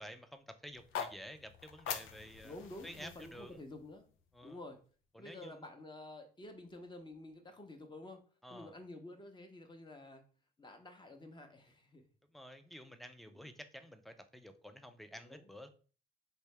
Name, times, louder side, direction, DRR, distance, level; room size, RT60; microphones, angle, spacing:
voice 1, 0.0-2.6 2.8-3.6 4.3-4.6 5.1-5.6 8.4-8.7 12.3-15.7, equal, ahead, 8 dB, 0.4 m, -51 dB
sound 1, 0.7-4.9, left 7 dB, 80° left, 0.5 m, -45 dB
voice 2, 2.4-4.1 4.4-4.8 5.2-8.2 8.5-10.2 10.6-12.0 13.3-13.5 15.2-15.5, left 2 dB, 25° left, 5 dB, 0.8 m, -50 dB
3.3 x 2.7 x 3.2 m, 0.38 s
cardioid pair, 90°, 20 cm